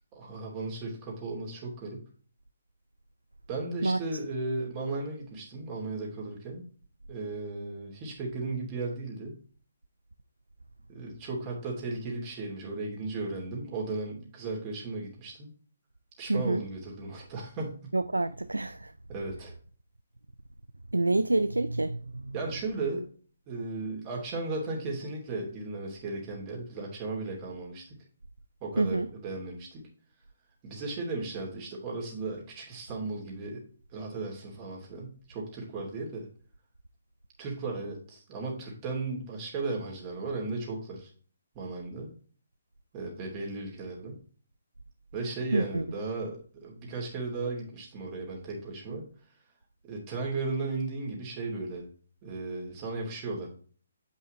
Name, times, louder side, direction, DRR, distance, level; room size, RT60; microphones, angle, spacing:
voice 1, 0.1-2.0 3.5-6.6 7.1-9.4 10.9-15.5 16.2-17.9 19.1-19.5 22.3-23.0 23.5-28.0 28.6-29.8 30.6-33.6 33.9-36.3 37.4-41.1 41.5-42.1 42.9-44.2 45.1-49.1 49.9-51.9 52.2-53.5, right 3 dB, 30° right, 2.8 m, -35 dB
voice 2, 16.3-16.6 17.9-18.9 20.9-22.3 28.8-29.1 45.5-45.8, right 2 dB, 85° right, 0.4 m, -27 dB
8.1 x 5.5 x 3.1 m
figure-of-eight pair, 135°, 0 cm